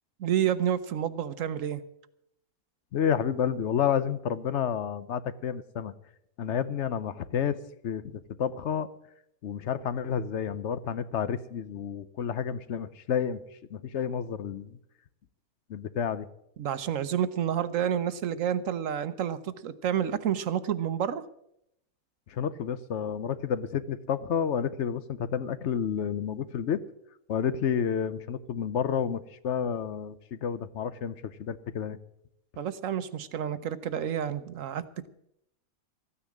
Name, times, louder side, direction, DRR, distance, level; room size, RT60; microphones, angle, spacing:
voice 1, 0.2-1.8 16.6-21.2 32.6-35.1, right 9 dB, 65° right, 13 dB, 1.1 m, -29 dB
voice 2, 2.9-5.9 6.4-8.9 9.4-13.4 13.7-14.8 15.7-16.3 22.3-26.8 27.3-32.0, left 8 dB, 60° left, 14 dB, 0.9 m, -30 dB
14.0 x 9.8 x 7.2 m, 0.76 s
omnidirectional pair, 1.5 m